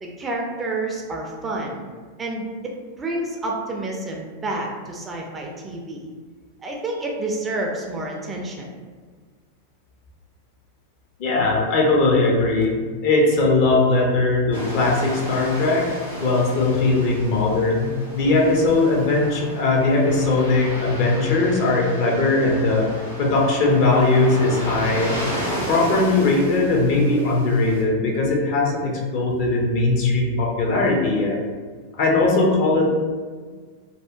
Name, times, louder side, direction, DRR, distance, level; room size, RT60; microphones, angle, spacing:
voice 1, 0.0-1.8 2.2-6.1 6.6-8.7, right 2 dB, 20° right, -1 dB, 0.4 m, -29 dB
voice 2, 11.2-12.8 13.0-15.9 16.2-22.9 23.2-25.2 25.7-31.4 32.0-33.0, left 2 dB, 45° left, -1 dB, 0.5 m, -19 dB
sound 1, 14.5-27.8, equal, 85° left, 0.9 m, -33 dB
2.7 x 2.1 x 2.4 m, 1.5 s
figure-of-eight pair, 90°, 0 cm